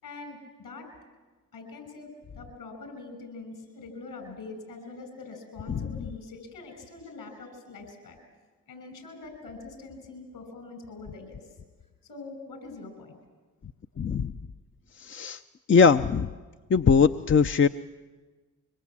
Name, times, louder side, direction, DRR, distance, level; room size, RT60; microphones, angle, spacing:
voice 1, 0.0-0.9 1.5-8.2 8.7-11.5 12.1-13.2, left 3 dB, 65° left, 7 dB, 6.2 m, -43 dB
voice 2, 14.0-14.3 15.0-15.4 15.7-16.3 16.7-17.7, left 5 dB, 30° left, 9 dB, 0.7 m, -21 dB
25.0 x 23.0 x 7.6 m, 1.3 s
hypercardioid pair, 45°, 39 cm